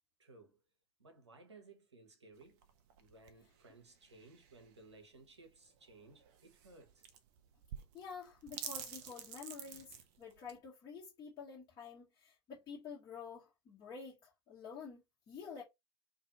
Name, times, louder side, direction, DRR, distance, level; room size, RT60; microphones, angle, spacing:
voice 1, 0.2-0.6 1.0-2.6 3.0-7.0, right 3 dB, 80° right, 0.8 m, -59 dB
sound 1, 2.4-10.6, right 8 dB, 45° right, 0.5 m, -50 dB
voice 2, 7.9-15.6, left 6 dB, 25° left, 1.1 m, -49 dB
2.5 x 2.5 x 2.7 m
figure-of-eight pair, 85°, 14 cm